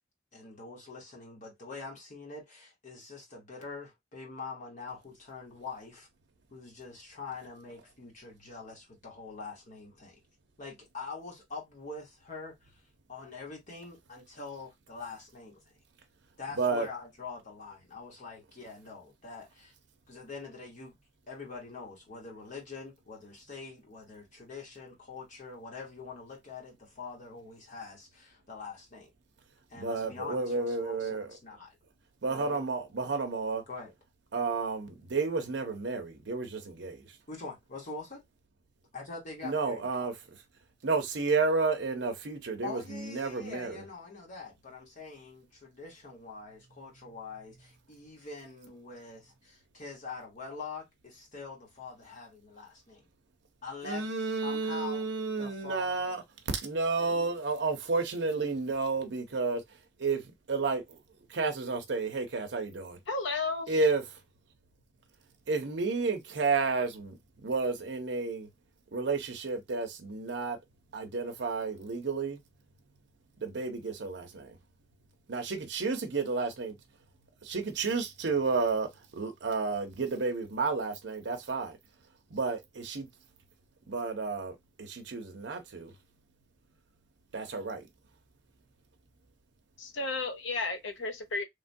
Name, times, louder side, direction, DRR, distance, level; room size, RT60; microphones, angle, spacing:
voice 1, 0.3-6.1 6.5-10.2 10.6-12.8 13.1-15.6 16.4-19.7 20.1-21.0 21.3-29.1 29.7-31.8 32.2-32.6 33.7-33.9 37.3-38.2 38.9-39.9 42.6-53.0 53.6-55.0 55.4-56.2 57.0-57.3, left 4 dB, 40° left, 1.0 m, -44 dB
voice 2, 16.6-16.9 29.8-31.4 32.2-33.6 34.3-37.2 39.4-40.4 40.8-43.8 53.8-59.6 60.0-61.0 61.3-63.0 63.7-64.2 65.5-67.2 67.4-68.5 68.9-70.6 70.9-72.4 73.4-74.6 75.3-76.8 77.4-81.8 82.3-83.1 83.9-85.9 87.3-87.8, right 4 dB, 65° right, 0.7 m, -31 dB
voice 3, 63.1-63.7 89.8-91.4, left 3 dB, 70° left, 0.7 m, -33 dB
3.2 x 2.2 x 2.6 m
head